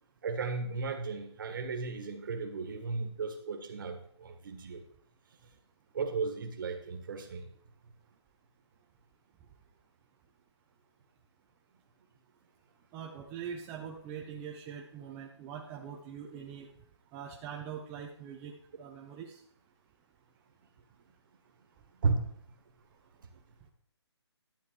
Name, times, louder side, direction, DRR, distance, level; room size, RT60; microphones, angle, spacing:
voice 1, 0.2-4.8 5.9-7.5 22.0-22.3, right 4 dB, 50° right, 7 dB, 1.8 m, -34 dB
voice 2, 12.9-16.7 17.1-19.4, right 7 dB, 15° right, 0 dB, 0.6 m, -43 dB
12.0 x 8.2 x 4.7 m, 0.64 s
hypercardioid pair, 160°, 15 cm